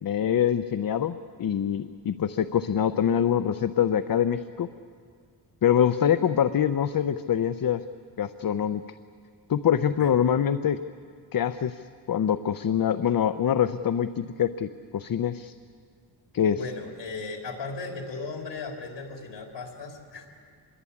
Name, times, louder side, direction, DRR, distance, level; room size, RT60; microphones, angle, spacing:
voice 1, 0.0-4.7 5.6-7.8 8.2-8.8 9.5-10.8 11.3-11.8 12.1-15.5 16.3-16.6, left 9 dB, 55° left, 11 dB, 0.7 m, -24 dB
voice 2, 16.5-20.3, left 4 dB, 80° left, 2 dB, 3.9 m, -36 dB
26.5 x 22.5 x 8.6 m, 2.1 s
wide cardioid pair, 105°, 42 cm